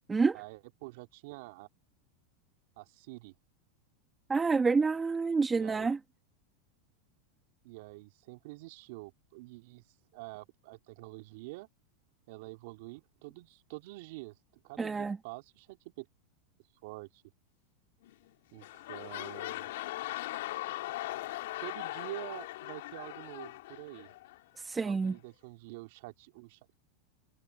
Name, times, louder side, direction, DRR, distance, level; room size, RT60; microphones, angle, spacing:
voice 1, 0.3-1.7 2.8-3.3 5.5-5.9 7.6-9.8 10.1-11.7 12.3-16.1 16.8-17.2 18.5-19.7 21.6-24.1 24.8-26.6, right 23 dB, 65° right, 3.2 m, -47 dB
voice 2, 4.3-6.0 14.8-15.2 24.7-25.1, right 4 dB, 15° right, 1.3 m, -28 dB
sound 1, 18.0-18.3 18.6-24.4 25.1-25.2, left 17 dB, 70° left, 3.1 m, -40 dB
hypercardioid pair, 110°, 0 cm